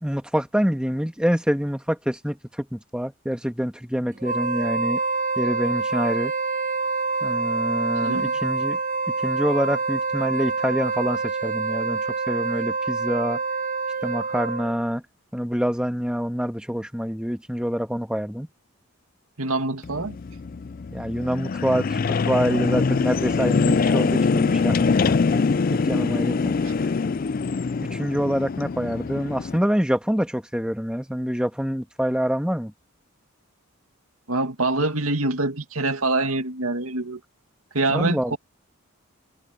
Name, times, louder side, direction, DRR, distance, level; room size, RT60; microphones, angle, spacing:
voice 1, 0.0-5.0 5.4-6.3 7.2-8.8 9.2-13.4 14.0-15.0 15.3-18.5 20.9-25.4 25.8-26.5 27.9-32.7 37.9-38.4, equal, 5° right, 1.7 m, -26 dB
Wind instrument woodwind instrument, 4.2-14.8, right 3 dB, 35° right, 1.2 m, -26 dB
voice 2, 8.0-8.4 19.4-20.2 26.6-26.7 34.3-37.2 37.7-38.4, right 2 dB, 80° right, 2.3 m, -25 dB
sound 1, 19.8-29.6, left 4 dB, 40° left, 0.4 m, -23 dB
head